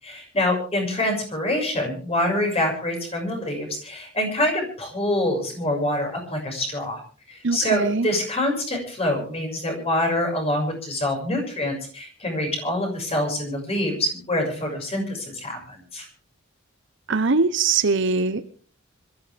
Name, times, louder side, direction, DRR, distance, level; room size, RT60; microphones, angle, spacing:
voice 1, 0.0-7.0 7.3-16.1, left 1 dB, 30° left, 2 dB, 6.4 m, -25 dB
voice 2, 7.4-8.1 17.1-18.4, right 4 dB, 60° right, 12 dB, 1.0 m, -21 dB
25.5 x 14.0 x 3.5 m, 0.41 s
head